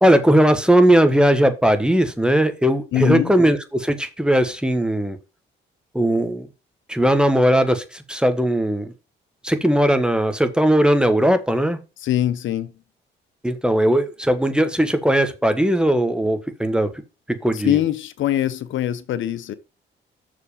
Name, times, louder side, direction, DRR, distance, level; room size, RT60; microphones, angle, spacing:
voice 1, 0.0-5.2 5.9-6.5 6.9-8.9 9.4-11.8 13.4-16.9 17.3-17.8, right 1 dB, 5° right, 1.3 m, -18 dB
voice 2, 2.9-3.3 12.0-12.7 17.5-19.5, left 12 dB, 75° left, 0.9 m, -22 dB
6.6 x 5.1 x 6.7 m
cardioid pair, 90°, 20 cm